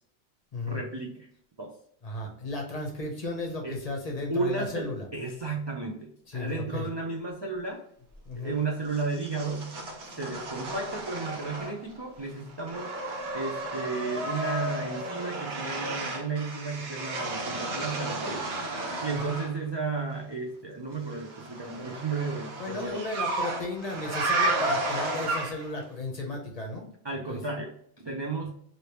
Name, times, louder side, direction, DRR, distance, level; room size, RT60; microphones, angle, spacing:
voice 1, 0.7-1.3 1.6-1.8 3.6-3.8 4.3-7.9 8.4-9.8 10.2-12.9 13.3-18.4 19.0-23.0 27.0-28.5, right 4 dB, 45° right, 0 dB, 0.3 m, -33 dB
voice 2, 2.0-5.1 6.3-6.9 8.3-8.6 19.1-19.4 22.6-26.9 27.3-27.4, left 2 dB, 40° left, 1 dB, 0.7 m, -34 dB
sound 1, 8.9-12.0 12.3-19.5 21.1-25.8, right 2 dB, 90° right, 1.2 m, -33 dB
3.2 x 2.7 x 2.9 m, 0.67 s
omnidirectional pair, 1.1 m